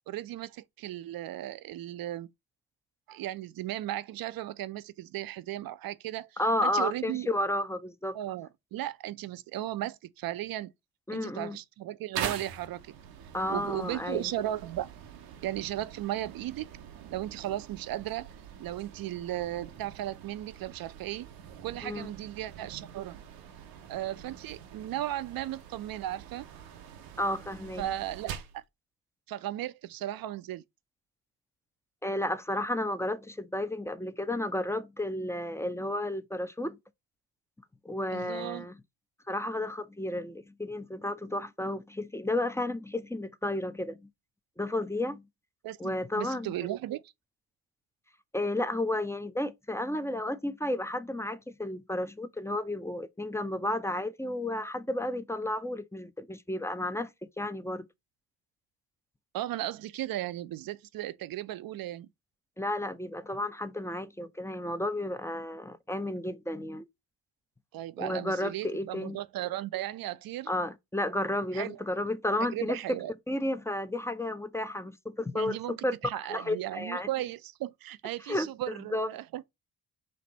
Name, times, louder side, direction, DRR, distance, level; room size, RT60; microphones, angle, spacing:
voice 1, 0.1-2.3 3.1-7.3 8.1-10.7 11.1-12.9 13.5-14.9 15.4-16.7 17.1-18.3 18.6-21.3 21.6-23.2 23.9-26.5 27.8-28.6 29.3-30.6 38.1-38.7 45.6-47.0 59.3-62.1 67.7-70.5 71.5-71.8 72.5-73.1 75.3-75.8 76.0-79.4, right 13 dB, 55° right, 0.5 m, -36 dB
voice 2, 6.4-8.2 11.1-11.6 13.3-14.3 21.8-22.1 27.2-27.8 32.0-36.8 37.8-38.7 39.3-44.1 44.6-45.2 45.8-46.5 48.3-57.1 57.4-57.9 62.6-66.9 68.0-69.2 70.5-73.0 73.3-76.0 76.3-77.1 78.3-79.1, left 1 dB, 5° left, 0.5 m, -32 dB
sound 1, 12.1-28.6, right 9 dB, 85° right, 0.8 m, -44 dB
4.2 x 2.5 x 4.1 m
hypercardioid pair, 45°, 44 cm